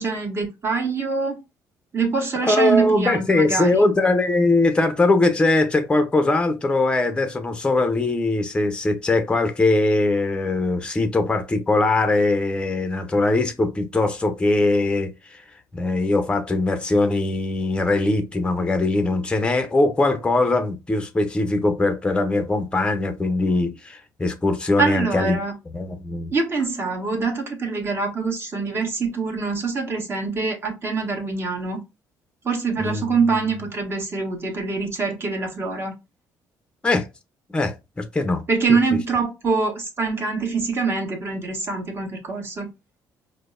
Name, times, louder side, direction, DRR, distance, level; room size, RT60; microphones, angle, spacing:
voice 1, 0.0-1.4 1.9-3.9 24.8-25.5 26.3-31.8 32.4-35.9 38.5-42.7, right 4 dB, 35° right, 1.4 m, -24 dB
voice 2, 2.5-15.4 15.7-25.4 25.7-26.3 32.8-33.2 36.8-37.1 37.5-38.4, left 2 dB, 15° left, 0.6 m, -21 dB
4.9 x 2.1 x 2.4 m
cardioid pair, 100°, 7 cm